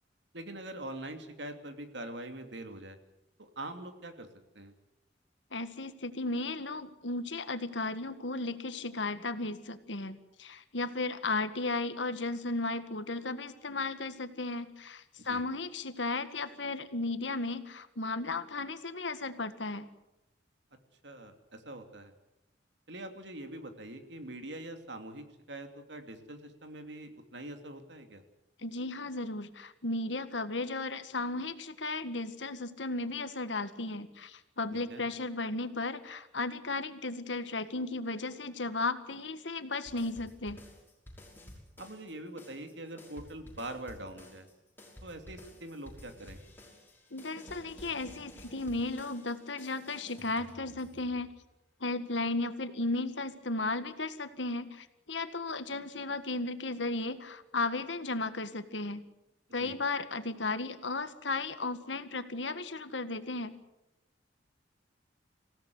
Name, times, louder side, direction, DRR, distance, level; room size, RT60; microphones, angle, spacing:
voice 1, 0.3-3.0 3.4-4.3 4.5-4.7 15.2-15.4 21.0-22.1 22.9-28.2 34.7-35.0 41.8-44.5 45.0-46.4 59.6-59.8, right 1 dB, 70° right, 6 dB, 2.9 m, -43 dB
voice 2, 5.5-19.9 28.6-40.6 47.1-51.3 51.8-59.0 59.5-63.6, left 3 dB, 80° left, 10 dB, 1.7 m, -35 dB
sound 1, 39.9-42.1 42.4-51.4, left 1 dB, 10° left, 6.0 m, -52 dB
26.5 x 17.0 x 7.9 m, 0.91 s
head